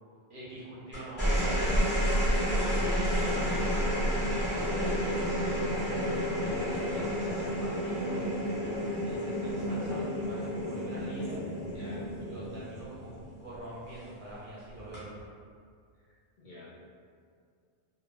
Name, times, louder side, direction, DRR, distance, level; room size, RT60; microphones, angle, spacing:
voice 1, 0.3-2.1 2.6-5.5 6.0-8.8 9.0-11.4 12.2-13.1 13.4-15.2, right 1 dB, 60° right, -7 dB, 0.6 m, -44 dB
sound 1, 0.9-13.5 14.8-15.2, equal, 15° left, 0.5 m, -30 dB
voice 2, 11.7-12.1 16.1-16.8, left 1 dB, 55° left, -8 dB, 0.6 m, -49 dB
2.1 x 2.0 x 3.1 m, 2.2 s
omnidirectional pair, 1.1 m